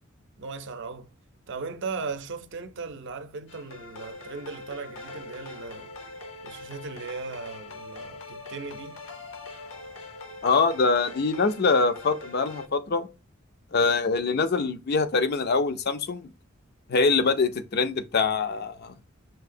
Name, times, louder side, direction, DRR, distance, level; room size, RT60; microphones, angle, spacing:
voice 1, 0.4-1.1 1.5-5.9 6.4-9.0, right 4 dB, 60° right, 0.5 m, -37 dB
sound 1, 3.5-12.7, left 2 dB, 70° left, 0.8 m, -42 dB
voice 2, 10.4-13.1 13.7-16.2 16.9-18.9, left 4 dB, 50° left, 0.5 m, -24 dB
5.9 x 2.7 x 2.5 m
head